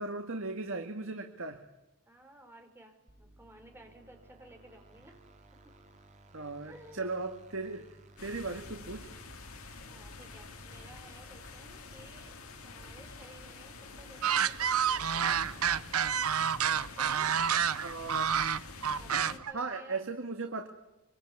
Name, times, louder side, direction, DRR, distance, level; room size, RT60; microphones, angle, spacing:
voice 1, 0.0-1.6 6.3-7.9 8.2-9.1 17.8-18.3 19.5-20.7, right 3 dB, 65° right, 5 dB, 1.9 m, -37 dB
voice 2, 2.0-5.2 5.6-5.8 6.4-7.3 9.9-12.4 12.6-15.4 16.7-17.4 19.0-20.0, right 1 dB, 10° right, 4 dB, 4.4 m, -55 dB
sound 1, 3.1-15.8, right 1 dB, 30° right, 3.1 m, -58 dB
sound 2, 8.2-19.4, left 3 dB, 75° left, 2.7 m, -48 dB
sound 3, 14.2-19.5, right 8 dB, 80° right, 0.9 m, -29 dB
25.0 x 24.0 x 9.8 m, 0.95 s
head